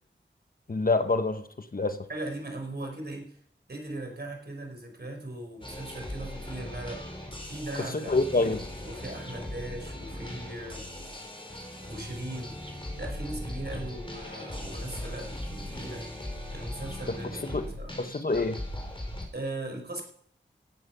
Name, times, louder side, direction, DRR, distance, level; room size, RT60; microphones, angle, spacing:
voice 1, 0.7-2.0 7.9-8.6 17.5-17.6 18.0-18.6, left 3 dB, 50° left, 9 dB, 1.1 m, -26 dB
voice 2, 2.1-3.4 3.7-7.0 7.4-10.9 11.9-12.6 13.0-16.1 16.5-18.0 19.3-20.0, right 2 dB, 55° right, 3 dB, 4.4 m, -39 dB
sound 1, 5.6-19.3, left 1 dB, 25° left, 4.0 m, -39 dB
16.5 x 10.5 x 5.7 m, 0.66 s
wide cardioid pair, 70°, 20 cm